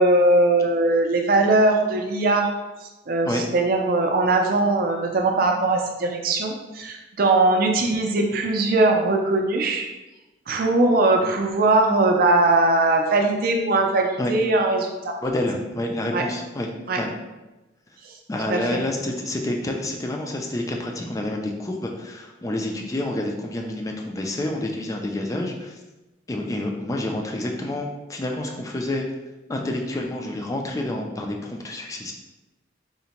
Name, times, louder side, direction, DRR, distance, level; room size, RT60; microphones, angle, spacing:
voice 1, 0.0-2.5 3.1-9.9 10.5-15.2 16.1-16.2 16.9-17.0 18.5-18.8, right 2 dB, 50° right, 2 dB, 0.4 m, -20 dB
voice 2, 15.2-16.7 17.0-17.1 18.3-25.7 26.3-29.1 29.5-32.1, left 1 dB, 20° left, 1 dB, 0.3 m, -28 dB
3.7 x 2.1 x 2.8 m, 1.1 s
head